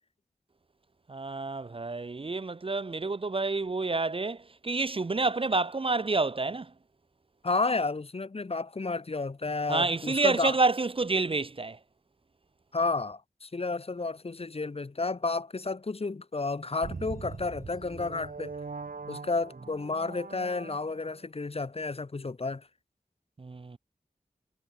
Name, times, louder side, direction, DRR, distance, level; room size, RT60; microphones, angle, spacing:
voice 1, 1.1-6.7 9.7-11.8 23.4-23.8, right 3 dB, 40° right, 0.6 m, -28 dB
voice 2, 7.4-10.6 12.7-18.5 19.1-22.7, left 3 dB, 40° left, 0.8 m, -31 dB
sound 1, 16.8-21.2, right 4 dB, 75° right, 2.0 m, -42 dB
wide cardioid pair, 60°, 15 cm